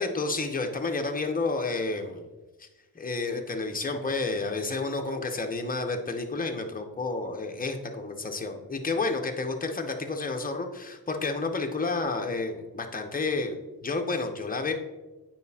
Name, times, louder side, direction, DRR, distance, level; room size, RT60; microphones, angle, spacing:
voice 1, 0.0-2.3 2.6-2.7 3.0-13.6 13.8-14.7, left 3 dB, 20° left, 4 dB, 0.7 m, -30 dB
9.0 x 4.9 x 2.8 m, 1.1 s
wide cardioid pair, 100°, 41 cm